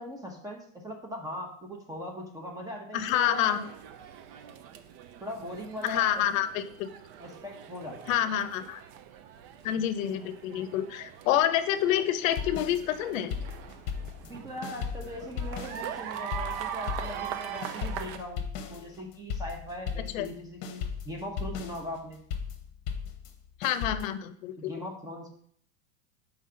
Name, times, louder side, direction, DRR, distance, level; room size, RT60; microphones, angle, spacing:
voice 1, 0.0-3.7 5.2-6.2 7.2-8.0 14.2-18.4 18.7-22.2 24.6-25.3, equal, 10° right, 1 dB, 0.8 m, -40 dB
voice 2, 2.9-3.6 5.8-6.9 8.1-8.8 9.6-13.3 20.1-20.3 23.6-24.7, left 11 dB, 75° left, 10 dB, 0.7 m, -28 dB
sound 1, 3.0-18.2, right 9 dB, 45° right, 0.5 m, -42 dB
sound 2, 12.3-14.4 14.6-20.4 20.6-24.1, left 6 dB, 45° left, 0.9 m, -36 dB
5.5 x 4.6 x 3.8 m, 0.64 s
supercardioid pair, 145°, 40 cm